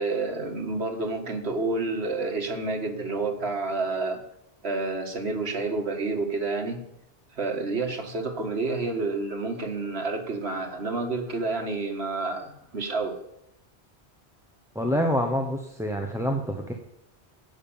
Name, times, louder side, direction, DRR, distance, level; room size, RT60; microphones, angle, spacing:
voice 1, 0.0-4.2 4.6-6.8 7.3-13.2, right 3 dB, 75° right, 4 dB, 1.9 m, -29 dB
voice 2, 14.7-16.7, equal, 5° right, 2 dB, 0.9 m, -26 dB
10.5 x 8.8 x 7.1 m, 0.80 s
omnidirectional pair, 1.1 m